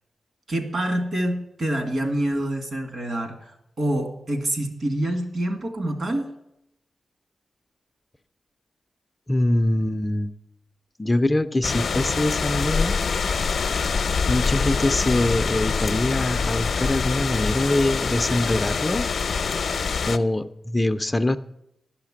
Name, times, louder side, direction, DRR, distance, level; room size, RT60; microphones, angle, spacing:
voice 1, 0.5-6.3, right 1 dB, 60° right, 3 dB, 2.0 m, -26 dB
voice 2, 9.3-10.3 11.0-13.0 14.3-19.1 20.1-21.4, left 1 dB, 20° left, 9 dB, 0.4 m, -23 dB
sound 1, 11.6-20.2, left 5 dB, 70° left, 0.6 m, -25 dB
11.5 x 5.8 x 7.5 m, 0.82 s
wide cardioid pair, 100°, 0 cm